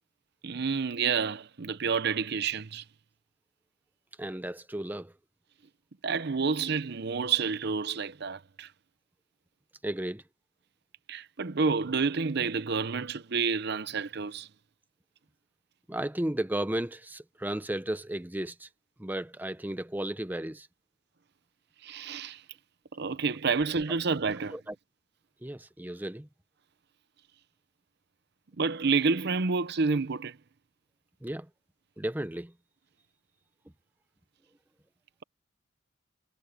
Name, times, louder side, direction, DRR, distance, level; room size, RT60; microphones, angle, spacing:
voice 1, 0.4-2.8 6.0-8.7 11.1-14.5 21.8-22.4 22.9-24.6 28.6-30.4, right 5 dB, 55° right, 0.7 m, -29 dB
voice 2, 4.2-5.1 9.8-10.2 15.9-18.7 19.0-20.7 24.5-24.7 25.4-26.3 31.2-31.5 32.0-32.5, right 1 dB, 10° right, 0.6 m, -34 dB
head